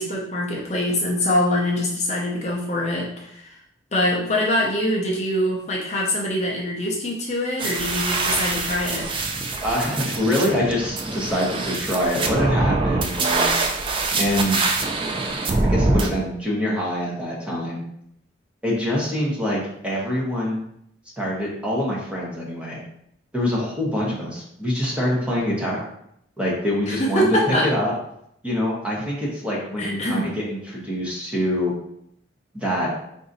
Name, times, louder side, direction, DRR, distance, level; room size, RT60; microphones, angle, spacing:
voice 1, 0.0-3.5 3.9-9.1 26.9-27.7 29.8-30.3, left 1 dB, 35° left, -3 dB, 0.5 m, -24 dB
sound 1, 7.6-16.1, right 3 dB, 25° right, 0.3 m, -24 dB
voice 2, 9.6-13.6 14.1-14.6 15.3-15.4 15.7-17.8 18.6-20.6 21.2-22.8 23.3-25.8 26.4-27.9 28.4-31.7 32.5-32.9, left 1 dB, 5° right, -5 dB, 0.9 m, -25 dB
3.9 x 2.6 x 3.9 m, 0.74 s
head